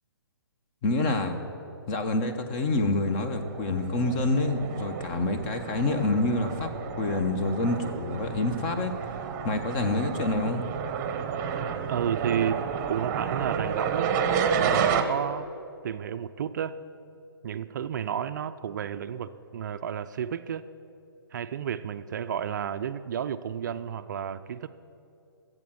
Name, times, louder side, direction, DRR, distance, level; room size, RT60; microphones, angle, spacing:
voice 1, 0.8-1.4 1.9-8.9 9.4-10.7, left 2 dB, 30° left, 7 dB, 1.1 m, -27 dB
sound 1, 3.3-15.0, right 7 dB, 25° right, 0.9 m, -31 dB
voice 2, 11.9-12.6 12.9-14.1 14.6-15.5 15.8-16.7 17.4-20.6 21.3-24.7, right 8 dB, 50° right, 12 dB, 0.4 m, -31 dB
14.0 x 7.7 x 7.8 m, 2.7 s
hypercardioid pair, 140°, 13 cm